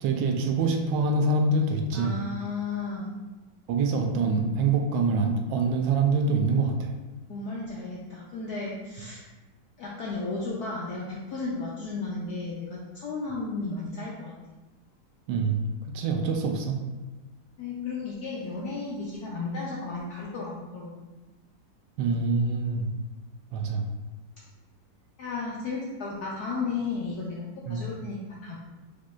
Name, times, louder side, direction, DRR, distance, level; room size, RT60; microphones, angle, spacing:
voice 1, 0.0-2.1 3.7-6.9 15.3-16.8 22.0-22.9 23.5-23.8 27.7-27.8, right 3 dB, 75° right, 3 dB, 1.2 m, -25 dB
voice 2, 1.9-3.1 7.3-9.2 9.8-14.3 17.6-21.0 25.2-28.6, left 3 dB, 70° left, -4 dB, 0.9 m, -34 dB
4.8 x 4.4 x 2.3 m, 1.2 s
omnidirectional pair, 2.2 m